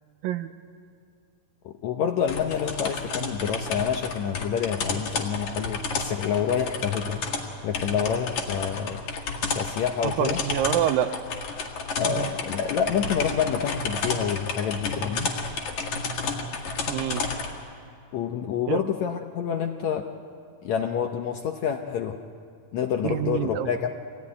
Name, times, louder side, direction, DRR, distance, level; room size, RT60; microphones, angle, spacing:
voice 1, 1.6-7.2 7.6-9.0 9.5-10.4 12.0-15.3 18.1-20.1 20.6-22.2 22.7-23.9, left 8 dB, 70° left, 4 dB, 1.7 m, -28 dB
sound 1, 2.3-17.5, left 4 dB, 55° left, 3.0 m, -31 dB
voice 2, 10.0-11.1 12.1-12.3 16.9-17.3 18.7-18.8 23.0-23.7, right 11 dB, 80° right, 10 dB, 2.4 m, -26 dB
25.0 x 16.5 x 9.8 m, 2.3 s
omnidirectional pair, 4.2 m